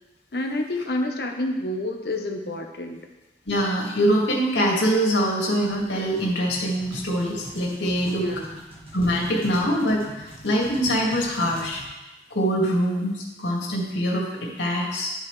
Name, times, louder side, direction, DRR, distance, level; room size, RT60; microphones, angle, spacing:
voice 1, 0.3-3.0 8.2-8.6, left 1 dB, 60° left, 3 dB, 1.0 m, -29 dB
voice 2, 3.5-8.2 8.9-10.1 10.4-11.8 12.3-15.1, equal, 85° left, -3 dB, 2.2 m, -23 dB
sound 1, 5.6-11.9, right 1 dB, 30° right, 1.9 m, -43 dB
12.0 x 5.6 x 3.3 m, 1.0 s
head